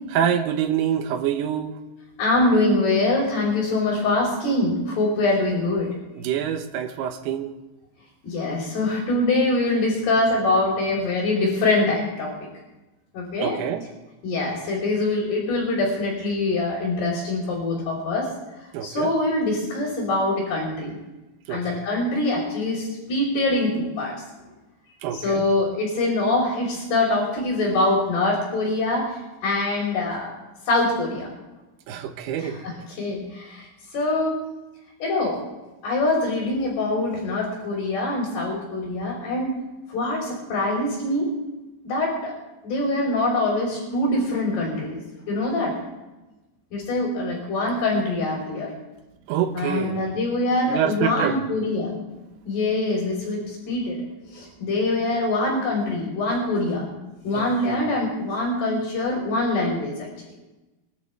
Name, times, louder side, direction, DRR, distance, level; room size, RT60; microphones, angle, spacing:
voice 1, 0.1-1.8 6.2-7.5 13.4-13.9 18.7-19.1 21.5-21.8 25.0-25.5 31.9-32.6 49.3-50.0 50.7-51.4 57.3-57.8, right 9 dB, 85° right, 5 dB, 3.1 m, -26 dB
voice 2, 2.2-5.9 8.2-12.3 13.1-13.6 14.2-18.3 18.8-21.0 21.5-24.1 25.1-30.3 30.7-31.3 32.4-33.7 33.9-34.4 35.0-35.4 35.8-39.6 39.9-41.3 41.8-42.3 42.6-45.0 45.3-45.7 46.7-48.7 49.5-52.0 52.5-54.0 54.3-56.9 57.2-60.1, left 2 dB, 85° left, -7 dB, 6.7 m, -24 dB
25.0 x 12.5 x 3.6 m, 1.1 s
omnidirectional pair, 4.5 m